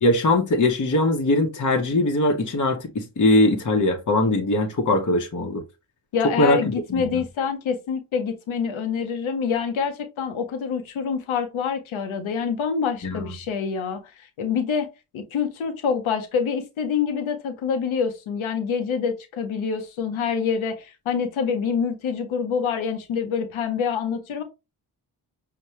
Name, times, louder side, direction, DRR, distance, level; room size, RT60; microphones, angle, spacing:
voice 1, 0.0-5.6 6.4-7.0 13.0-13.2, left 2 dB, 40° left, 0.9 m, -21 dB
voice 2, 6.1-14.9 15.1-24.4, left 6 dB, 90° left, 0.7 m, -26 dB
5.4 x 2.2 x 3.1 m
cardioid pair, 40°, 47 cm